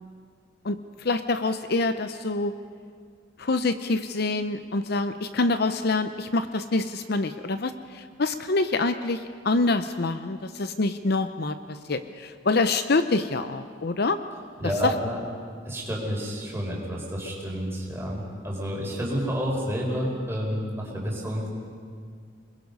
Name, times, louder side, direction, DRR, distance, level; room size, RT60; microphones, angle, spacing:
voice 1, 0.6-2.5 3.4-14.2 14.8-14.9, left 3 dB, 55° left, 10 dB, 0.7 m, -26 dB
voice 2, 14.6-15.2 15.7-21.5, equal, 15° right, -3 dB, 5.1 m, -30 dB
29.0 x 21.5 x 5.4 m, 2.1 s
head